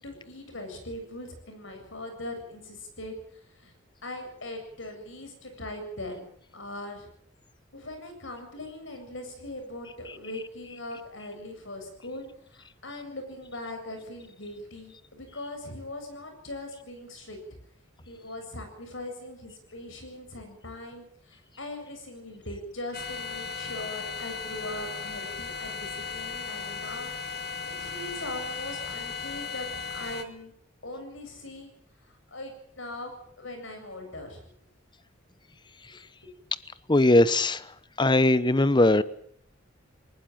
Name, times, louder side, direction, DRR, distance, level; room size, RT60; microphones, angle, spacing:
voice 1, 0.0-3.2 3.6-3.7 4.0-6.2 6.5-7.1 7.7-17.4 18.0-27.1 27.6-29.7 29.9-30.5 30.8-31.7 32.3-34.4 36.2-36.3, left 1 dB, 70° left, 7.6 m, -40 dB
sound 1, 22.9-30.2, left 5 dB, 55° left, 2.3 m, -36 dB
voice 2, 36.9-37.6 38.0-39.0, left 2 dB, 25° left, 0.9 m, -20 dB
20.5 x 19.5 x 8.9 m
head